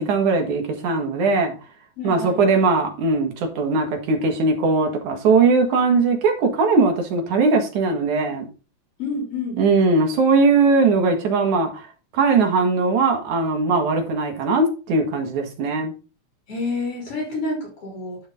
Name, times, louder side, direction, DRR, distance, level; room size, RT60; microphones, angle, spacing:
voice 1, 0.0-1.5 2.0-8.4 9.6-11.9 12.1-15.9, right 4 dB, 90° right, 3.4 m, -19 dB
voice 2, 2.0-2.4 9.0-9.6 16.5-18.2, left 3 dB, 50° left, 4.6 m, -28 dB
11.0 x 5.3 x 4.0 m
omnidirectional pair, 3.3 m